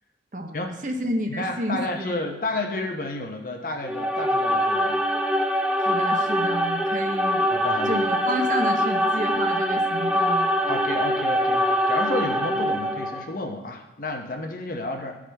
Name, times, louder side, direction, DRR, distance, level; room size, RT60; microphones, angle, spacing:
voice 1, 0.3-2.2 5.8-7.5 7.9-10.7 14.7-14.8, right 1 dB, 45° right, 4 dB, 0.8 m, -30 dB
voice 2, 1.3-5.0 7.5-8.0 10.7-15.2, left 2 dB, 50° left, 3 dB, 0.9 m, -31 dB
sound 1, 3.8-13.3, equal, 5° right, 0.3 m, -23 dB
13.0 x 4.9 x 3.4 m, 1.0 s
head